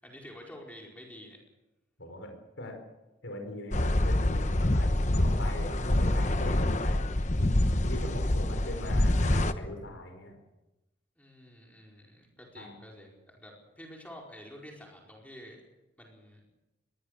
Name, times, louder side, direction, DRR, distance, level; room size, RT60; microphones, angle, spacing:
voice 1, 0.0-1.4 11.2-15.6 16.0-16.4, equal, 10° left, -1 dB, 4.8 m, -49 dB
voice 2, 2.0-2.3 2.6-2.7 3.2-7.0 7.8-10.3 12.6-12.7, left 1 dB, 80° left, 3 dB, 5.1 m, -40 dB
sound 1, 3.7-9.5, left 1 dB, 40° left, 1.0 m, -26 dB
24.0 x 20.5 x 6.7 m, 1.0 s
head